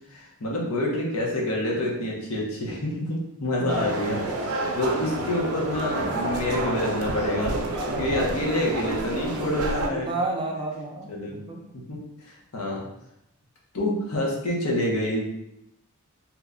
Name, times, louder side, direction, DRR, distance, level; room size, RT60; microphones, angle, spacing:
voice 1, 0.1-7.6 7.9-10.1 11.1-11.3 11.9-12.0 12.3-12.8 13.7-15.3, left 1 dB, 75° left, -3 dB, 0.8 m, -27 dB
sound 1, 3.7-9.9, right 2 dB, 75° right, 0.4 m, -29 dB
Piano, 5.8-7.9, left 1 dB, 15° left, 0.8 m, -43 dB
voice 2, 7.7-8.3 9.9-11.6, right 2 dB, 20° right, 0 dB, 0.5 m, -31 dB
2.9 x 2.2 x 3.7 m, 0.81 s
head